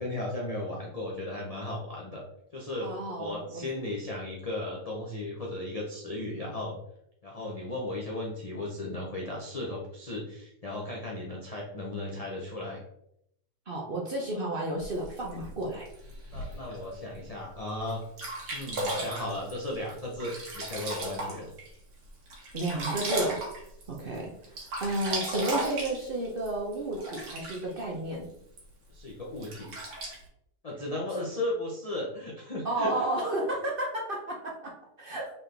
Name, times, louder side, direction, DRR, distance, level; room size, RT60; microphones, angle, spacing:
voice 1, 0.0-2.2 2.5-2.9 3.2-6.8 7.2-12.8 16.3-18.0 18.5-21.5 28.9-29.7 30.6-33.1, left 1 dB, 45° left, -3 dB, 0.5 m, -35 dB
voice 2, 2.8-3.6 13.7-15.9 22.5-23.4 23.9-24.3 24.8-28.3 32.6-35.3, right 1 dB, 50° right, -1 dB, 0.6 m, -32 dB
Sink (filling or washing), 14.8-16.8 17.4-17.5 17.9-18.0 18.2-21.7 22.1-24.2 24.4-27.8 28.6-28.7 29.4-30.2, right 1 dB, 80° right, 1.9 m, -35 dB
4.1 x 3.9 x 3.3 m, 0.75 s
omnidirectional pair, 1.8 m